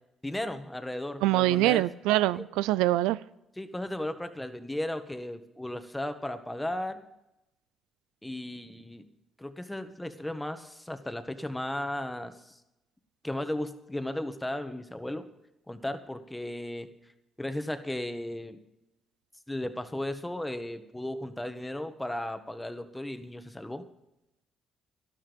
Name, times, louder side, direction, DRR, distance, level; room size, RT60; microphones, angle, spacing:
voice 1, 0.2-1.8 3.6-7.0 8.2-9.1 9.4-12.6 13.2-15.3 15.7-16.9 17.4-18.6 19.5-23.8, left 1 dB, 10° left, 9 dB, 1.5 m, -35 dB
voice 2, 1.2-3.2, right 16 dB, 90° right, 18 dB, 0.3 m, -24 dB
12.5 x 12.5 x 5.3 m, 0.88 s
supercardioid pair, 65°, 0 cm